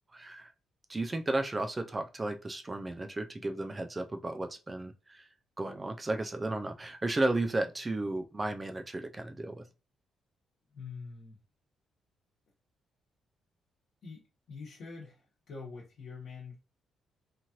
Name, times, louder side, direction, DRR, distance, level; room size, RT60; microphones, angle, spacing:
voice 1, 0.1-0.5 0.9-5.3 5.6-9.7, right 2 dB, 20° right, 0.3 m, -34 dB
voice 2, 10.7-11.4 14.0-14.2 14.5-16.6, left 4 dB, 60° left, 1.0 m, -45 dB
3.0 x 2.5 x 2.8 m
cardioid pair, 135°, 0 cm